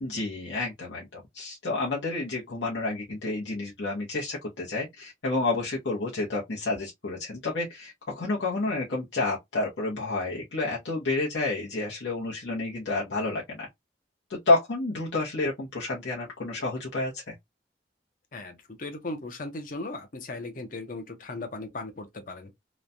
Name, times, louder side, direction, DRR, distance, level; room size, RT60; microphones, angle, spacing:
voice 1, 0.0-13.7 14.3-17.3, left 2 dB, 75° left, 0.9 m, -29 dB
voice 2, 18.3-22.5, left 2 dB, 45° left, 0.7 m, -37 dB
3.1 x 2.1 x 2.5 m
head